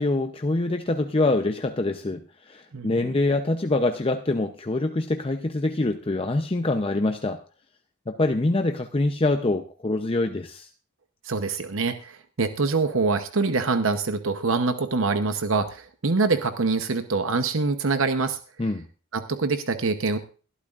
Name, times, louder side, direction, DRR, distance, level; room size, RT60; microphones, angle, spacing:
voice 1, 0.0-7.4 8.1-10.7 18.6-18.8, left 2 dB, 25° left, 7 dB, 0.6 m, -25 dB
voice 2, 2.7-3.2 11.2-18.4 19.1-20.2, right 4 dB, 65° right, 9 dB, 0.9 m, -25 dB
20.0 x 12.5 x 2.5 m, 0.36 s
head